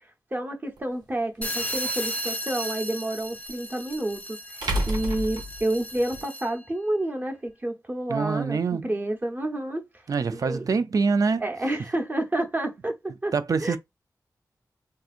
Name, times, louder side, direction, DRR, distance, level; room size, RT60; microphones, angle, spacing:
voice 1, 0.3-9.8 10.3-10.7 11.4-13.3 13.6-13.8, right 1 dB, 25° right, 0.8 m, -29 dB
sound 1, 0.8-0.9 3.4-3.5 4.6-6.2, equal, 85° right, 1.0 m, -29 dB
sound 2, 1.4-6.6, equal, 20° left, 0.5 m, -34 dB
voice 2, 8.1-8.9 10.1-11.4 13.3-13.8, right 5 dB, 55° right, 0.4 m, -25 dB
3.5 x 2.7 x 2.4 m
wide cardioid pair, 95°, 7 cm